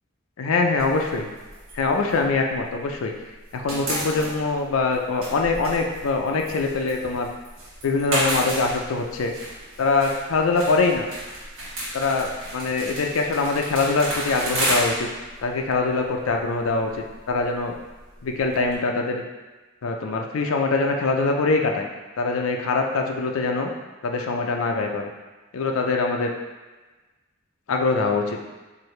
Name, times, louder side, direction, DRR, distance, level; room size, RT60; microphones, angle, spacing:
voice 1, 0.4-1.3 1.7-3.1 3.5-7.3 7.8-9.3 9.8-11.1 11.9-15.1 15.4-16.9 17.3-17.7 18.2-19.2 19.8-21.9 22.2-23.7 24.0-25.1 25.5-26.3 27.7-28.4, left 3 dB, 90° left, 3 dB, 0.5 m, -23 dB
sound 1, 0.8-3.0 3.3-18.8, right 1 dB, 75° right, 1.3 m, -32 dB
4.6 x 2.6 x 3.1 m, 1.2 s
head